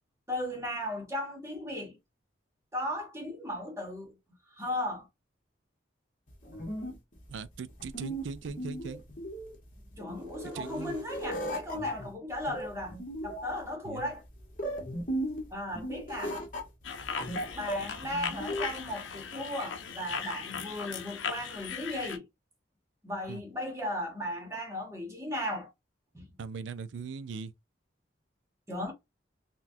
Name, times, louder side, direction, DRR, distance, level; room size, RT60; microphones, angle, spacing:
voice 1, 0.3-2.0 2.7-4.1 4.5-5.1 10.0-14.2 15.5-16.4 17.5-22.2 23.0-25.7 26.1-26.3 28.7-28.9, left 1 dB, 15° right, 1.1 m, -36 dB
sound 1, 6.3-18.8, equal, 40° left, 1.1 m, -37 dB
voice 2, 7.3-9.0 10.5-11.0 13.8-14.1 23.3-23.4 26.4-27.5, right 5 dB, 75° right, 0.4 m, -40 dB
sound 2, 16.8-22.2, left 7 dB, 75° left, 0.6 m, -38 dB
3.9 x 2.2 x 2.7 m
head